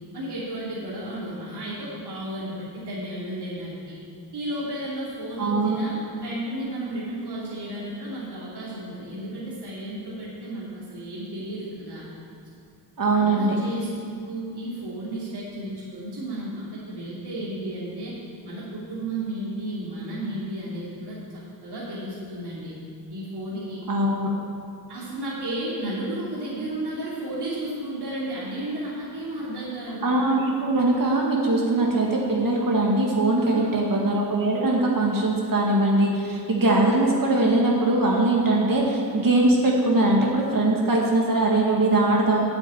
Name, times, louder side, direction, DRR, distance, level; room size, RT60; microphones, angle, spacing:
voice 1, 0.1-4.0 4.3-12.0 13.1-18.1 18.4-22.7 23.1-23.8 24.9-30.0 33.4-33.9, right 1 dB, 70° right, -8 dB, 2.9 m, -33 dB
voice 2, 5.4-5.8 13.0-13.6 23.9-24.3 30.0-42.6, right 2 dB, 55° right, -2 dB, 2.0 m, -21 dB
8.9 x 8.6 x 8.9 m, 2.4 s
wide cardioid pair, 85°, 41 cm